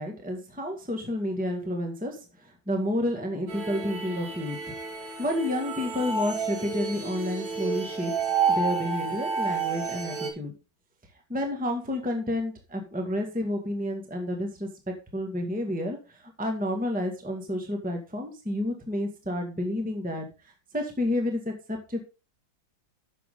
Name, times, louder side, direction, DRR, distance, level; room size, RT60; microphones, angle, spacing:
voice 1, 0.0-4.6 5.2-10.5 11.3-22.0, left 1 dB, 5° right, 3 dB, 1.7 m, -30 dB
sound 1, 3.5-10.3, right 5 dB, 70° right, 3.3 m, -30 dB
12.0 x 7.2 x 3.8 m, 0.30 s
omnidirectional pair, 2.1 m